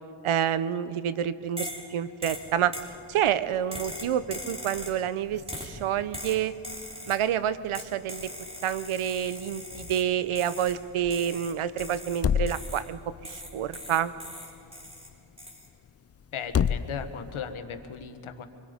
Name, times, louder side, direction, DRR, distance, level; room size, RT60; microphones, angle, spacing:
voice 1, 0.2-2.7 3.1-6.5 7.1-8.3 8.6-14.1, right 9 dB, 80° right, 15 dB, 0.9 m, -28 dB
sound 1, 1.6-1.9 2.2-2.9 3.7-5.0 5.5-5.8 6.1-7.3 7.7-10.1 10.4-10.8 11.1-12.9 13.2-15.1 15.4-15.7, equal, 10° right, 3.7 m, -40 dB
sound 2, 2.3-17.5, left 8 dB, 30° left, 0.5 m, -37 dB
voice 2, 16.3-18.5, left 7 dB, 75° left, 8 dB, 1.5 m, -37 dB
25.0 x 22.0 x 5.2 m, 2.7 s
cardioid pair, 85°, 49 cm